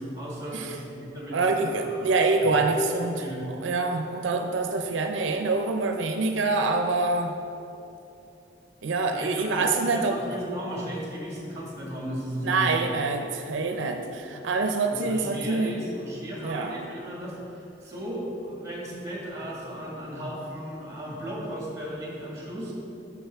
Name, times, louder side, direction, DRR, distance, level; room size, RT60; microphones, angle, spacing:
voice 1, 0.0-2.1 2.4-2.6 2.9-3.5 9.1-12.8 14.9-22.7, equal, 15° right, -4 dB, 1.6 m, -36 dB
voice 2, 1.3-3.2 3.6-7.3 8.8-10.2 12.4-15.7 16.4-16.7, right 3 dB, 80° right, 5 dB, 0.5 m, -25 dB
8.9 x 6.0 x 3.4 m, 2.8 s
head